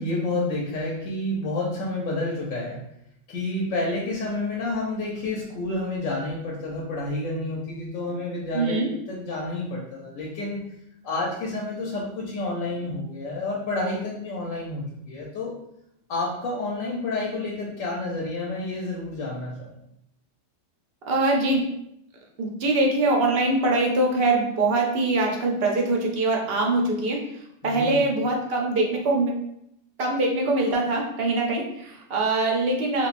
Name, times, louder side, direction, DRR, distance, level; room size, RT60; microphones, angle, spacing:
voice 1, 0.0-2.8 3.3-8.8 9.1-10.7 11.0-15.6 16.1-19.7 27.6-28.0, left 2 dB, 80° left, -3 dB, 1.0 m, -29 dB
voice 2, 8.5-8.9 21.1-21.6 22.4-27.2 27.6-29.3 30.0-33.1, right 2 dB, 55° right, 0 dB, 0.8 m, -23 dB
3.2 x 3.0 x 2.5 m, 0.76 s
omnidirectional pair, 1.3 m